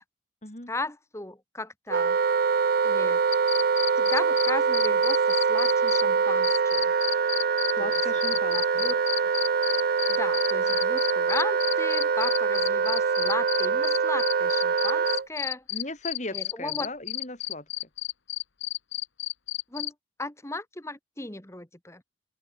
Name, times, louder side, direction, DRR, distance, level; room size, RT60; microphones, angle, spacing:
voice 1, 0.7-2.2 2.8-3.2 4.0-6.9 7.8-8.0 8.5-9.0 10.1-15.6 16.3-16.9 19.7-19.9 20.2-22.0, left 2 dB, 15° left, 1.9 m, -36 dB
Wind instrument woodwind instrument, 1.9-15.3, right 5 dB, 50° right, 0.4 m, -24 dB
sound 1, 3.3-6.0 6.4-19.9, left 17 dB, 80° left, 1.2 m, -31 dB
voice 2, 7.8-8.9 15.7-17.7, left 2 dB, 40° left, 5.4 m, -37 dB
open air
head